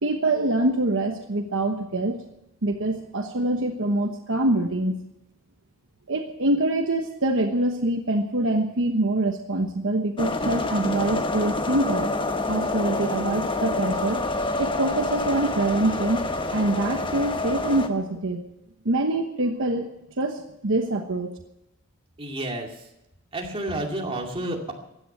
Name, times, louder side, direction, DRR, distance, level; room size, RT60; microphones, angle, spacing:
voice 1, 0.0-2.2 2.6-5.0 6.1-12.1 12.5-14.2 14.6-16.2 16.5-18.4 18.8-19.9 20.2-21.3, right 2 dB, 60° right, 5 dB, 1.1 m, -25 dB
sound 1, 10.2-17.9, left 2 dB, 20° left, 1.1 m, -27 dB
voice 2, 22.2-22.7 23.3-24.7, right 1 dB, 25° right, 1 dB, 2.4 m, -30 dB
16.0 x 10.0 x 7.9 m, 0.87 s
head